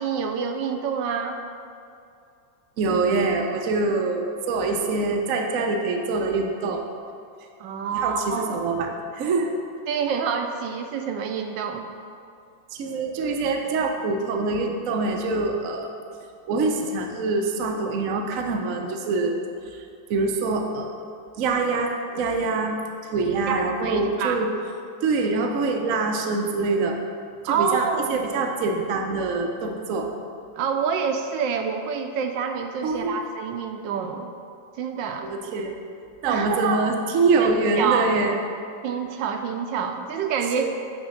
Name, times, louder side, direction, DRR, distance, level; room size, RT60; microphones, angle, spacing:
voice 1, 0.0-1.4 7.6-8.5 9.9-11.9 23.5-24.4 27.4-28.2 30.5-34.3 34.8-35.3 36.3-36.9 37.4-37.5 37.8-38.2 38.8-40.7, right 6 dB, 80° right, 5 dB, 1.2 m, -27 dB
voice 2, 2.8-6.9 7.9-9.5 12.7-15.9 16.5-19.4 19.7-19.8 20.1-20.9 21.4-22.8 23.1-24.5 25.0-27.0 27.4-30.1 32.8-33.2 35.2-35.7 36.2-38.4 40.6-40.7, right 3 dB, 60° right, 2 dB, 0.8 m, -24 dB
8.8 x 3.2 x 6.3 m, 2.4 s
omnidirectional pair, 2.0 m